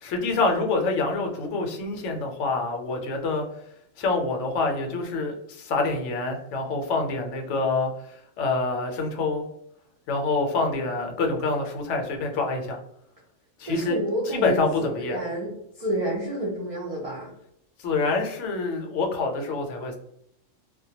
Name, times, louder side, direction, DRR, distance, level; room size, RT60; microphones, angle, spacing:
voice 1, 0.0-3.4 4.0-9.4 10.1-12.8 13.6-14.0 14.3-15.2 17.8-20.0, left 3 dB, 70° left, 3 dB, 0.8 m, -26 dB
voice 2, 13.7-15.5 15.8-17.3, right 1 dB, 60° right, -5 dB, 0.3 m, -29 dB
2.2 x 2.1 x 2.7 m, 0.76 s
omnidirectional pair, 1.4 m